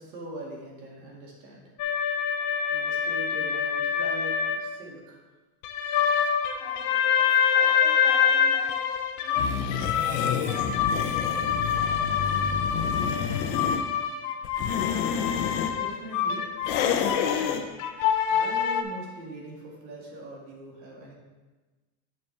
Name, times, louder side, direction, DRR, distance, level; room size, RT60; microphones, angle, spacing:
voice 1, 0.0-1.6 2.7-5.2 15.7-17.7 18.3-21.1, right 1 dB, 90° right, -2 dB, 2.3 m, -41 dB
sound 1, 1.8-4.6 5.6-18.8, left 7 dB, 45° left, 0.6 m, -26 dB
voice 2, 6.5-8.8 9.2-12.2, equal, 5° left, -10 dB, 2.2 m, -44 dB
sound 2, 9.4-13.8 14.4-15.7 16.6-17.6, left 7 dB, 80° left, 0.9 m, -29 dB
7.7 x 6.9 x 3.3 m, 1.2 s
cardioid pair, 170°, 48 cm